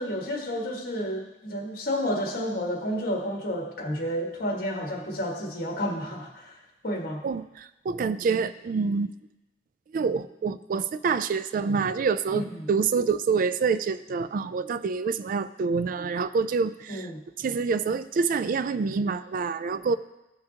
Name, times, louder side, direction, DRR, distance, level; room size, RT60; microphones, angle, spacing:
voice 1, 0.0-6.5 6.8-7.2 12.3-12.7 16.9-17.2, equal, 60° left, 0 dB, 1.7 m, -30 dB
voice 2, 7.2-9.1 9.9-17.1 17.4-20.0, right 5 dB, 50° right, 14 dB, 0.3 m, -27 dB
15.5 x 5.7 x 2.9 m, 0.96 s
head